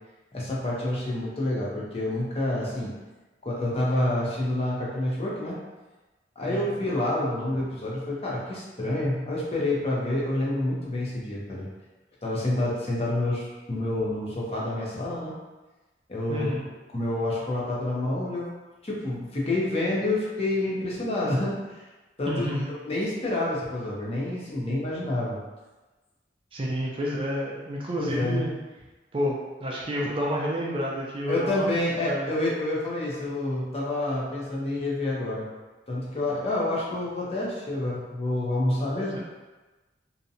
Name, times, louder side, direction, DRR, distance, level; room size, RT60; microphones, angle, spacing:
voice 1, 0.3-2.9 3.4-5.6 6.4-11.7 12.2-15.3 16.1-16.5 16.9-18.5 18.8-21.8 22.2-22.4 22.8-25.4 28.0-28.5 31.3-35.4 35.9-39.2, left 1 dB, 35° left, -5 dB, 0.6 m, -28 dB
voice 2, 16.3-16.7 22.3-22.7 26.5-28.5 29.1-31.7 32.0-32.3 39.0-39.2, equal, 30° right, -4 dB, 0.3 m, -29 dB
2.6 x 2.1 x 2.6 m, 1.2 s
head